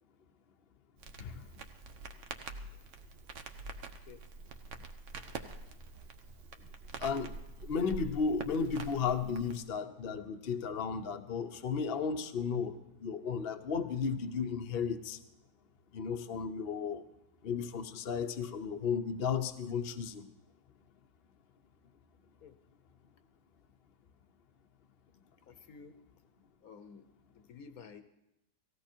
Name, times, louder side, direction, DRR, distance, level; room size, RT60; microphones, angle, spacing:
Crackle, 1.0-9.6, right 3 dB, 50° right, 1.1 m, -46 dB
voice 1, 7.0-7.3 7.6-15.2 15.9-17.0 17.4-20.2, left 6 dB, 45° left, 5 dB, 0.8 m, -34 dB
voice 2, 25.5-25.9 26.6-27.0 27.3-28.0, left 6 dB, 60° left, 10 dB, 1.2 m, -52 dB
18.0 x 15.5 x 4.4 m, 0.92 s
omnidirectional pair, 1.9 m